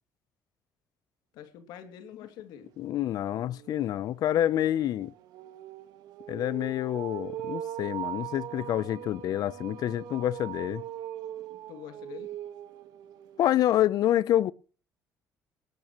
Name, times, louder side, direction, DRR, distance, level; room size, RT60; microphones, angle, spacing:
voice 1, 1.3-2.7 11.7-12.3, left 9 dB, 85° left, 2.6 m, -45 dB
sound 1, 2.3-2.4 2.8-13.5, right 12 dB, 75° right, 1.5 m, -41 dB
voice 2, 2.8-5.1 6.3-10.8 13.4-14.5, left 12 dB, 65° left, 0.7 m, -27 dB
18.5 x 12.5 x 3.1 m
supercardioid pair, 80°, 7 cm